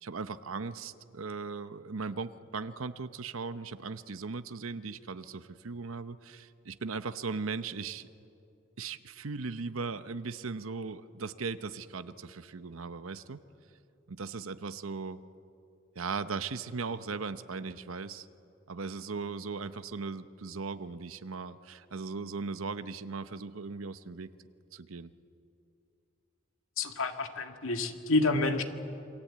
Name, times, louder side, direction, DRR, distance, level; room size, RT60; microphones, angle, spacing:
voice 1, 0.0-8.1 8.8-13.4 14.1-15.2 15.9-18.3 18.7-24.3 24.7-25.1, right 4 dB, 80° right, 11 dB, 0.8 m, -38 dB
voice 2, 26.8-28.6, left 2 dB, 75° left, 6 dB, 2.0 m, -28 dB
28.0 x 22.5 x 8.6 m, 2.7 s
head